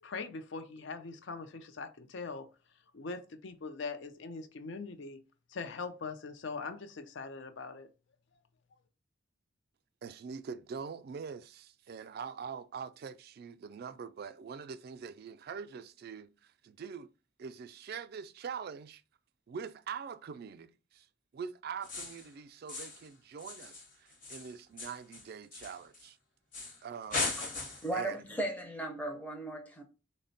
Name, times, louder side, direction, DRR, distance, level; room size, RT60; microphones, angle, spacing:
voice 1, 0.0-2.5 2.9-5.2 5.5-7.9, left 4 dB, 65° left, 0.5 m, -41 dB
voice 2, 10.0-17.1 17.4-19.0 19.5-21.1 21.3-26.2 26.8-27.3 27.9-28.2, right 6 dB, 50° right, 0.3 m, -44 dB
sound 1, 21.8-22.3 22.7-23.1 23.4-26.1 26.5-26.8 27.1-28.0, left 3 dB, 40° left, 0.9 m, -38 dB
voice 3, 27.8-29.8, right 2 dB, 10° left, 0.5 m, -36 dB
4.1 x 2.1 x 3.9 m
head